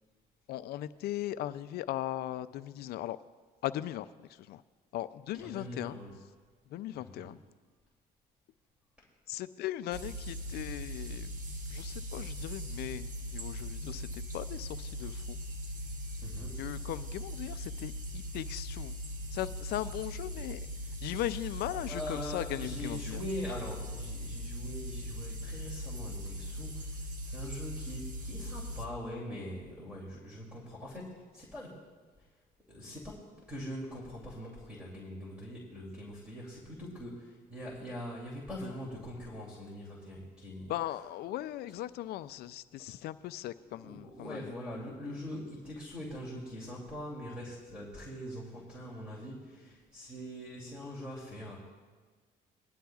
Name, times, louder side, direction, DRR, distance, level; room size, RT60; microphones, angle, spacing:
voice 1, 0.5-3.2 3.6-4.1 4.4-4.6 4.9-6.0 6.7-7.4 9.3-11.3 11.7-15.4 16.6-19.0 19.3-20.6 21.0-23.2 40.7-44.5, left 14 dB, 70° left, 14 dB, 0.4 m, -38 dB
voice 2, 5.4-6.1 7.0-7.3 9.0-9.1 16.2-16.6 21.7-31.8 32.2-32.3 32.7-41.1 42.8-43.0 43.6-51.6, equal, 5° right, -4 dB, 2.7 m, -43 dB
sound 1, 9.9-28.9, equal, 50° right, 1.3 m, -40 dB
19.5 x 11.5 x 2.3 m, 1.4 s
cardioid pair, 110°, 17 cm